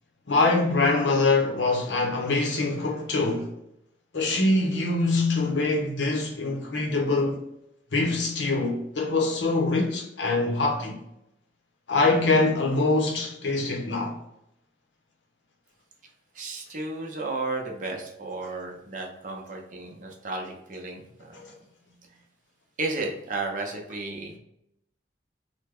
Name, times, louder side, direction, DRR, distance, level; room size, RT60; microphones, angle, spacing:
voice 1, 0.3-3.5 4.1-7.4 7.9-11.0 11.9-14.2 18.4-18.5, left 3 dB, 85° left, 0.7 m, -24 dB
voice 2, 16.4-21.4 22.8-24.3, right 3 dB, 45° right, 0.6 m, -33 dB
3.4 x 2.1 x 3.5 m
head